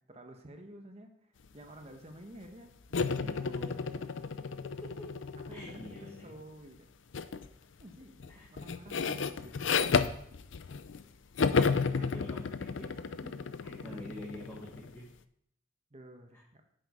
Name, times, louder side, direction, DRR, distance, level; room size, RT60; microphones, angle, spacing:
voice 1, 0.0-4.0 5.5-6.9 7.8-10.2 11.6-12.5 13.7-14.3 15.9-16.6, right 1 dB, 30° right, 4 dB, 1.0 m, -51 dB
sound 1, 2.9-6.2 7.1-7.5 7.8-11.0 11.4-14.9, left 5 dB, 65° left, 0.5 m, -32 dB
voice 2, 4.6-5.1 5.5-6.3 8.3-8.5 11.6-12.9 13.2-13.3 13.6-15.1 16.3-16.4, left 1 dB, 10° left, -4 dB, 1.5 m, -47 dB
8.3 x 7.9 x 4.8 m, 0.69 s
head